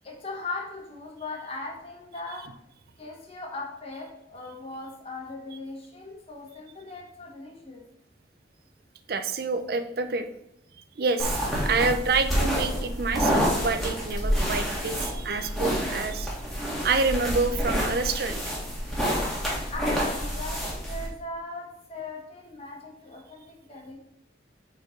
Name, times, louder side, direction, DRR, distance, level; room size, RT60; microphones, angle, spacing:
voice 1, 0.0-2.5 3.0-7.8 19.7-24.0, left 2 dB, 30° left, -1 dB, 1.4 m, -39 dB
voice 2, 9.1-10.3 11.0-16.3 16.8-18.5, right 4 dB, 55° right, 9 dB, 0.5 m, -27 dB
sound 1, 11.2-21.1, equal, ahead, 1.6 m, -28 dB
5.0 x 4.5 x 5.0 m, 0.80 s
head